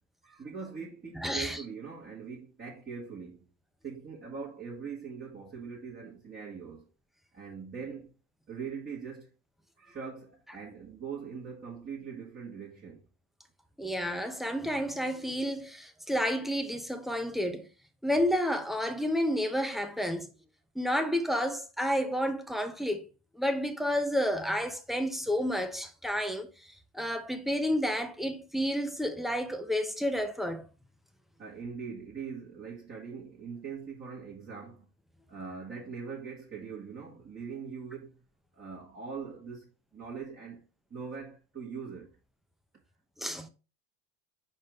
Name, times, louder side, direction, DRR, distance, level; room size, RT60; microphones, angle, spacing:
voice 1, 0.2-3.5 3.8-6.9 7.3-8.1 8.5-9.3 9.8-13.0 20.0-20.1 31.4-34.9 35.3-38.2 38.5-40.6 40.9-42.2, right 6 dB, 25° right, 2.0 m, -42 dB
voice 2, 1.2-1.6 13.8-17.7 18.0-20.3 20.7-23.1 23.3-30.7 43.2-43.5, equal, ahead, 0.8 m, -30 dB
5.0 x 4.4 x 5.0 m
supercardioid pair, 105°, 43 cm